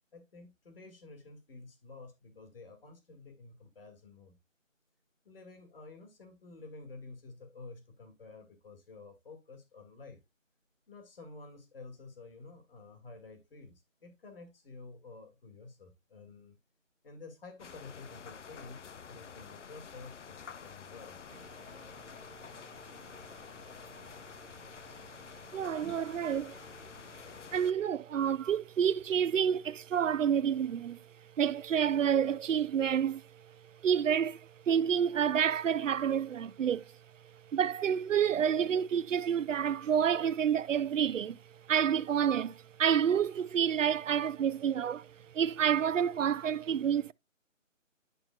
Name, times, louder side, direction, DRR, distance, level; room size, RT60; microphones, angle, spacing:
voice 1, 0.1-4.4 5.2-10.2 10.9-16.6 17.0-21.2, left 3 dB, 45° left, 2.1 m, -51 dB
sound 1, 17.6-27.7, left 6 dB, 65° left, 0.7 m, -49 dB
voice 2, 25.5-26.6 27.5-31.1 31.4-33.2 33.8-36.9 37.5-41.4 41.7-47.1, right 8 dB, 70° right, 0.5 m, -29 dB
10.5 x 5.6 x 2.2 m
figure-of-eight pair, 165°, 39 cm